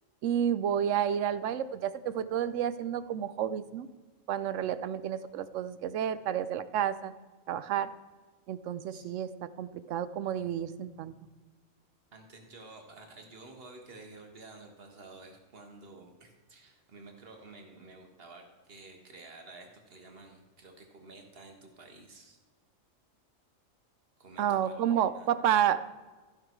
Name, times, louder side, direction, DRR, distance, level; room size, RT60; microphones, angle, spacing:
voice 1, 0.2-3.9 4.3-7.1 7.5-7.9 8.5-9.3 9.6-11.1 24.4-25.9, right 9 dB, 75° right, 14 dB, 0.9 m, -30 dB
voice 2, 12.1-22.4 24.2-25.3, right 3 dB, 50° right, 3 dB, 1.8 m, -51 dB
14.5 x 6.1 x 4.6 m, 1.3 s
omnidirectional pair, 1.4 m